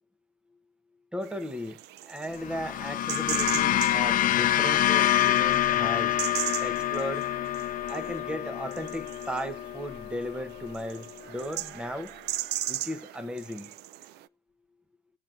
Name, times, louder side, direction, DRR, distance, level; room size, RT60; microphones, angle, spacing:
voice 1, 1.1-1.8 2.0-6.2 6.6-7.2 7.9-12.1 12.7-13.7, equal, 5° right, 0.9 m, -36 dB
sound 1, 1.2-14.2, right 15 dB, 85° right, 0.4 m, -38 dB
sound 2, 2.4-10.8, left 12 dB, 55° left, 0.5 m, -27 dB
20.0 x 7.4 x 2.5 m
cardioid pair, 110°, 17 cm